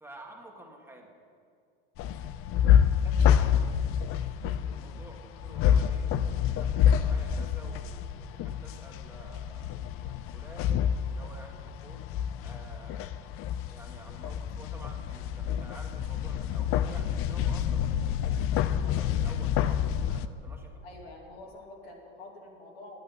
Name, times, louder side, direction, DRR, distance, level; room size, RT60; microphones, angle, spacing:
voice 1, 0.0-1.1 2.9-3.8 4.5-6.1 6.4-10.7 11.1-12.0 12.4-13.3 13.6-20.7, right 1 dB, 10° right, 0 dB, 1.7 m, -50 dB
sound 1, 2.0-20.3, left 9 dB, 45° left, 0.6 m, -27 dB
voice 2, 20.8-23.0, left 2 dB, 75° left, 0 dB, 2.5 m, -47 dB
9.4 x 9.4 x 7.7 m, 2.4 s
hypercardioid pair, 90°, 30 cm